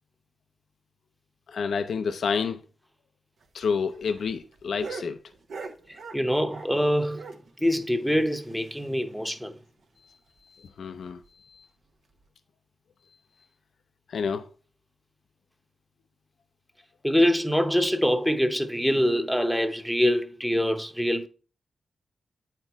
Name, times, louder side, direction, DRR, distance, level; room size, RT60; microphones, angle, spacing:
voice 1, 1.5-2.6 3.5-5.2 10.6-11.2 11.5-11.6 14.1-14.5, left 5 dB, 90° left, 0.5 m, -29 dB
sound 1, 3.4-6.8 7.1-9.1 9.4-9.5 9.8-9.9 10.3-10.4 11.0-11.3 12.1-12.2, right 4 dB, 90° right, 0.8 m, -42 dB
voice 2, 5.9-7.3 7.6-9.5 17.0-21.3, equal, ahead, 0.7 m, -24 dB
8.9 x 4.5 x 3.4 m
wide cardioid pair, 105°, 0 cm